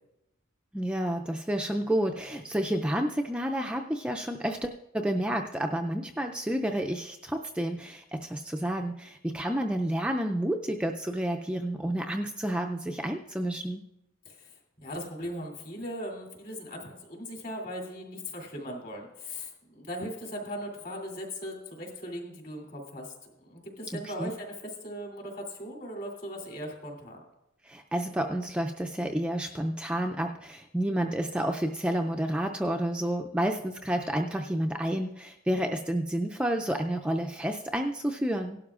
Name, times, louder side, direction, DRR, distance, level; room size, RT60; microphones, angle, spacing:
voice 1, 0.7-13.8 23.9-24.3 27.6-38.6, right 1 dB, 5° right, 3 dB, 0.4 m, -30 dB
voice 2, 14.8-23.1 23.4-24.5 24.8-27.2, equal, 40° left, 0 dB, 3.0 m, -39 dB
17.5 x 12.0 x 2.4 m, 0.89 s
head